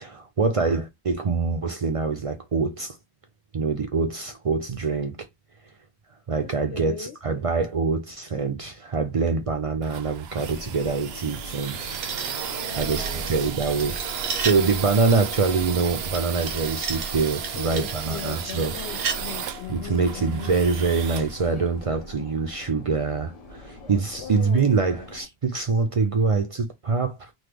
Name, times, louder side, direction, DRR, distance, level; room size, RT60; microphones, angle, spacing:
voice 1, 0.0-3.0 3.5-5.2 6.3-12.0 12.8-14.0 14.4-18.7 19.7-27.3, right 4 dB, 50° right, 0.4 m, -25 dB
voice 2, 6.4-7.2 12.5-13.4 17.6-20.6 24.1-24.9, left 9 dB, 85° left, 0.9 m, -39 dB
sound 1, 9.4-22.2, right 7 dB, 70° right, 0.8 m, -34 dB
sound 2, 10.4-25.3, left 2 dB, 40° left, 0.7 m, -44 dB
sound 3, 11.3-14.7 16.1-19.2, right 5 dB, 90° right, 1.1 m, -35 dB
3.1 x 2.2 x 3.4 m
omnidirectional pair, 1.1 m